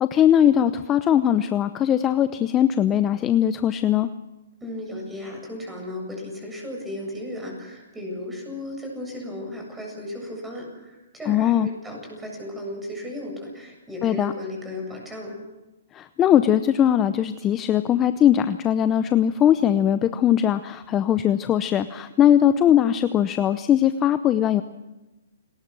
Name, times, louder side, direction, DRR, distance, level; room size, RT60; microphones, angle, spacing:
voice 1, 0.0-4.1 11.3-11.7 14.0-14.3 15.9-24.6, left 10 dB, 20° left, 11 dB, 0.7 m, -20 dB
voice 2, 4.6-15.4, left 1 dB, 5° right, 1 dB, 7.6 m, -35 dB
29.0 x 20.0 x 6.2 m, 1.1 s
hypercardioid pair, 155°, 0 cm